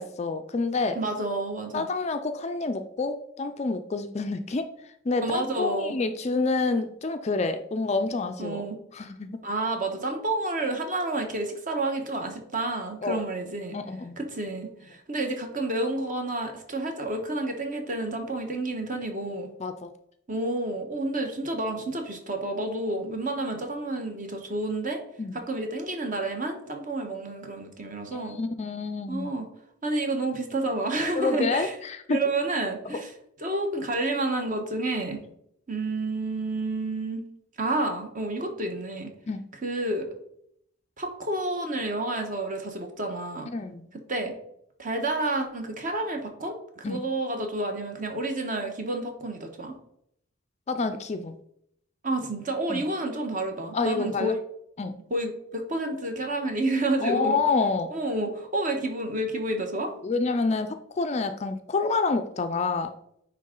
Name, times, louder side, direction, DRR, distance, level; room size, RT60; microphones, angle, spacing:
voice 1, 0.0-1.0 1.7-4.7 5.1-8.7 8.9-9.3 13.0-13.2 13.7-14.2 19.6-19.9 22.9-23.0 25.2-25.4 28.1-29.3 31.2-32.2 39.3-39.4 43.5-43.8 46.8-47.0 50.7-51.3 52.7-52.8 53.7-54.3 54.8-55.0 57.0-57.9 60.0-62.9, left 3 dB, 30° left, 8 dB, 0.4 m, -28 dB
voice 2, 0.9-1.9 5.2-6.0 8.4-8.8 9.4-13.8 14.2-19.5 20.3-25.0 25.3-28.4 29.1-29.5 29.8-31.7 32.1-33.1 33.4-35.2 35.7-37.2 37.6-39.1 39.6-40.0 41.0-43.5 43.9-44.3 44.8-49.7 52.0-54.4 54.8-57.4 57.9-59.9, right 2 dB, 40° right, 4 dB, 1.2 m, -30 dB
9.5 x 3.7 x 3.8 m, 0.72 s
head